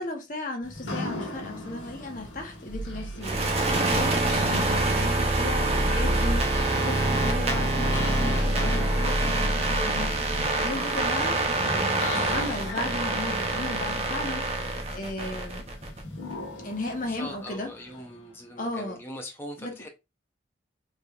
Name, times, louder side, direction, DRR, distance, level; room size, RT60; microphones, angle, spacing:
voice 1, 0.0-15.7 16.6-17.7 18.6-19.0 19.6-19.7, left 1 dB, 45° left, 1.0 m, -35 dB
sound 1, 0.6-18.5, left 2 dB, 75° left, 1.4 m, -40 dB
sound 2, 3.2-16.0, right 2 dB, 30° right, 0.7 m, -25 dB
voice 2, 17.0-19.9, left 1 dB, 10° left, 0.6 m, -41 dB
4.2 x 3.4 x 2.4 m
head